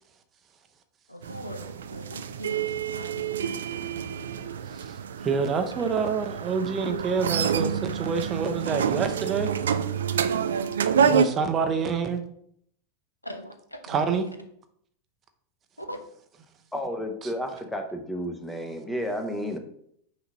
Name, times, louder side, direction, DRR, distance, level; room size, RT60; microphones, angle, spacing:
voice 1, 1.1-3.6 13.2-14.0 15.8-16.0, equal, 85° left, 6 dB, 0.7 m, -41 dB
sound 1, 1.2-11.3, right 7 dB, 65° right, 0.3 m, -28 dB
voice 2, 5.2-9.5 11.0-12.2 13.9-14.3 17.2-17.3, right 5 dB, 25° right, 7 dB, 0.7 m, -27 dB
voice 3, 16.7-19.6, equal, 5° left, 4 dB, 0.9 m, -32 dB
5.9 x 3.0 x 5.3 m, 0.69 s
figure-of-eight pair, 90°, 0 cm